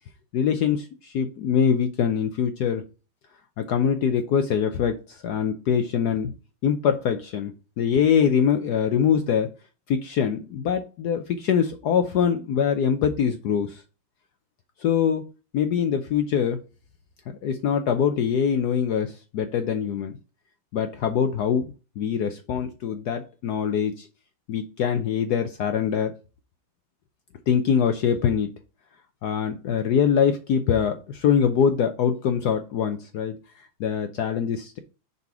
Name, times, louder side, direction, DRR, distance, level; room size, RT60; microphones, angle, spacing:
voice 1, 0.3-2.8 3.6-6.3 6.6-9.5 9.9-13.8 14.8-15.2 15.5-16.6 17.4-20.2 20.7-21.7 22.0-24.1 24.5-26.1 27.5-28.5 29.2-34.8, left 7 dB, 75° left, 7 dB, 0.9 m, -23 dB
6.9 x 4.1 x 4.7 m, 0.33 s
omnidirectional pair, 2.4 m